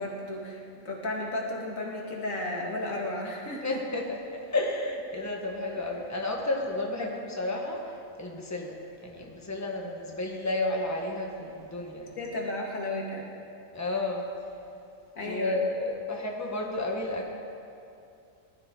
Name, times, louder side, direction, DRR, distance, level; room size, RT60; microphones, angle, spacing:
voice 1, 0.0-3.8 7.0-7.1 12.1-13.2 15.2-15.6, left 1 dB, 70° left, -2 dB, 2.5 m, -34 dB
voice 2, 3.6-7.8 8.2-8.7 9.0-12.2 13.7-14.3 15.2-17.3, left 2 dB, 10° left, 0 dB, 1.4 m, -32 dB
19.0 x 13.0 x 3.9 m, 2.6 s
omnidirectional pair, 1.4 m